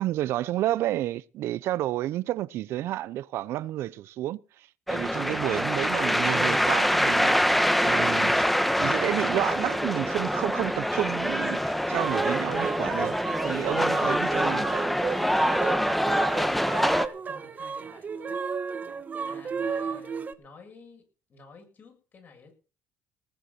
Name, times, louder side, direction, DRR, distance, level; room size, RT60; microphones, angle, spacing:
voice 1, 0.0-8.4 8.8-13.2 13.4-14.7, right 14 dB, 70° right, 0.6 m, -30 dB
sound 1, 4.9-17.1, equal, ahead, 1.2 m, -25 dB
sound 2, 12.0-20.3, right 5 dB, 40° right, 1.4 m, -33 dB
voice 2, 15.6-18.4 19.2-22.5, left 4 dB, 45° left, 7.6 m, -52 dB
18.5 x 8.1 x 5.8 m
supercardioid pair, 80°, 4 cm